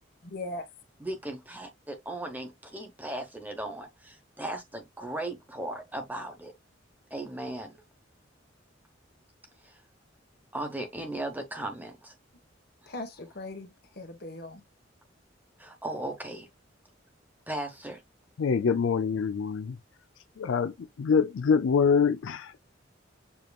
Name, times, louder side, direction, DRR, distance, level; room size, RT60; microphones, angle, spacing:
voice 1, 0.2-0.7 12.9-14.6, left 2 dB, 55° left, 1.3 m, -39 dB
voice 2, 1.0-6.5 7.1-7.8 9.6-9.8 10.5-12.1 12.8-12.9 15.6-16.5 17.5-18.0, right 1 dB, 10° right, 1.1 m, -37 dB
voice 3, 18.4-19.8 20.4-22.6, left 6 dB, 85° left, 0.4 m, -25 dB
7.0 x 3.0 x 2.3 m
head